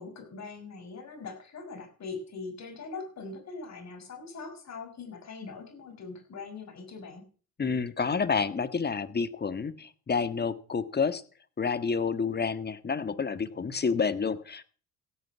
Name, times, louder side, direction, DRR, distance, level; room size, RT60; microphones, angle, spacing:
voice 1, 0.0-7.3, left 4 dB, 45° left, 5 dB, 6.1 m, -42 dB
voice 2, 7.6-11.2 11.6-14.6, left 5 dB, 25° left, 13 dB, 1.6 m, -29 dB
16.0 x 9.5 x 6.0 m, 0.41 s
supercardioid pair, 75°, 38 cm